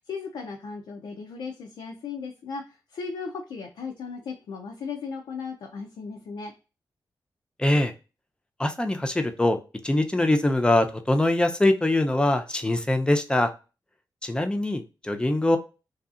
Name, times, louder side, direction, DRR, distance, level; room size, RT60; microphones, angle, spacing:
voice 1, 0.1-2.6 2.9-6.5, left 5 dB, 85° left, 2 dB, 0.5 m, -36 dB
voice 2, 7.6-7.9 8.6-9.6 9.8-13.5 14.2-15.6, left 1 dB, 10° left, 6 dB, 0.5 m, -23 dB
2.7 x 2.3 x 2.4 m, 0.31 s
cardioid pair, 75°, 8 cm